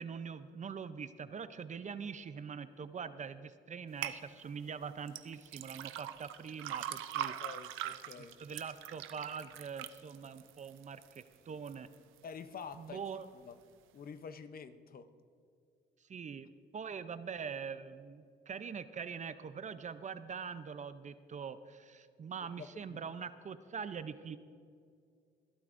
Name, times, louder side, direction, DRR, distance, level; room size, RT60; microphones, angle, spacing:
voice 1, 0.0-7.3 8.2-11.9 12.7-13.3 16.1-24.4, right 6 dB, 35° right, 12 dB, 0.5 m, -43 dB
sound 1, 4.0-4.2 5.1-11.2 11.7-12.2 12.7-12.8, right 11 dB, 85° right, 0.6 m, -42 dB
voice 2, 7.2-8.4 12.2-13.0 13.3-13.6 13.9-15.1 22.4-23.0, left 6 dB, 50° left, 11 dB, 0.7 m, -48 dB
21.0 x 12.0 x 2.6 m, 2.3 s
cardioid pair, 90°, 20 cm